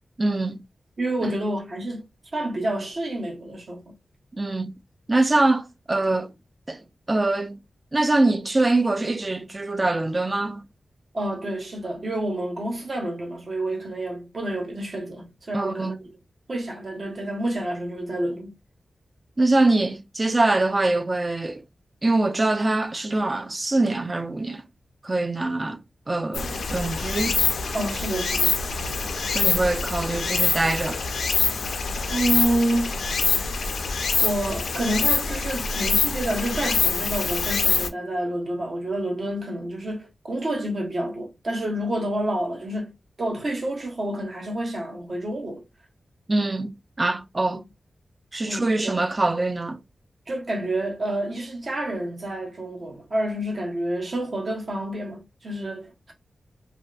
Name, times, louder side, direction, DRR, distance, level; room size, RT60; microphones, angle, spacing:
voice 1, 0.2-0.6 1.2-1.3 4.3-4.8 5.1-6.3 6.7-6.8 7.1-7.6 7.9-10.7 15.5-16.0 19.4-21.6 22.0-24.6 25.0-27.4 29.3-31.0 46.3-47.6 48.3-49.8, right 2 dB, 30° right, 0.3 m, -23 dB
voice 2, 1.0-2.0 2.3-3.9 11.1-16.0 16.5-18.5 27.7-28.6 32.1-33.1 34.2-45.6 47.5-47.6 48.5-49.0 50.3-56.1, right 1 dB, 50° right, 0.9 m, -28 dB
Stream, 26.3-37.9, left 4 dB, 80° left, 0.3 m, -25 dB
2.7 x 2.1 x 2.3 m
wide cardioid pair, 90°, 0 cm